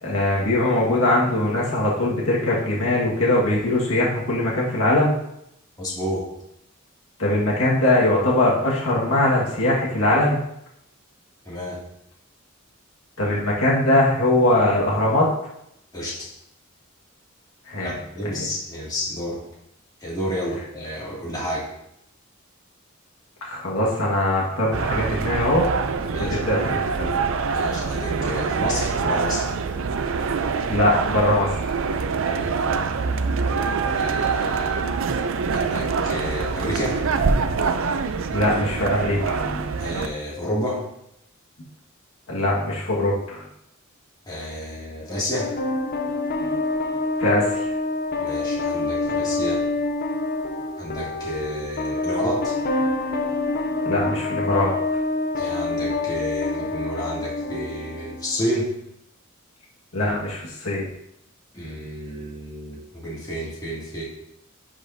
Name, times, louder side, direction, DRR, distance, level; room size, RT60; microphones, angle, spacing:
voice 1, 0.0-5.1 7.2-10.4 13.2-15.3 17.7-17.9 23.4-25.7 26.4-27.2 30.7-31.5 38.3-39.6 42.3-43.4 46.4-46.5 47.2-47.4 53.8-54.7 59.9-60.9, left 1 dB, 80° left, -5 dB, 1.7 m, -21 dB
voice 2, 5.8-6.2 11.4-11.8 15.9-16.3 17.8-19.4 20.0-21.7 26.1-26.4 27.5-29.5 32.3-34.9 35.5-37.0 39.8-40.8 44.3-45.6 48.2-49.6 50.8-52.6 55.4-58.7 61.5-64.0, equal, 20° left, -7 dB, 2.4 m, -30 dB
sound 1, 24.7-40.1, right 5 dB, 65° right, 0.5 m, -25 dB
sound 2, 45.3-58.4, left 2 dB, 45° left, 0.6 m, -26 dB
10.5 x 4.8 x 2.7 m, 0.80 s
head